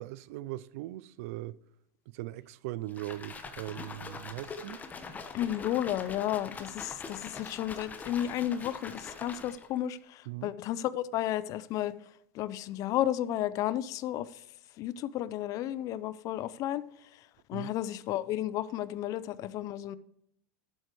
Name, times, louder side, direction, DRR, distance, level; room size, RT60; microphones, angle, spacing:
voice 1, 0.0-1.6 2.1-4.8 10.3-10.5 17.5-17.7, right 16 dB, 70° right, 0.5 m, -40 dB
sound 1, 2.9-9.8, left 4 dB, 20° left, 1.1 m, -43 dB
voice 2, 5.3-11.9 12.3-14.4 14.8-16.8 17.5-20.0, left 12 dB, 45° left, 0.6 m, -32 dB
12.0 x 7.6 x 4.7 m
supercardioid pair, 125°, 8 cm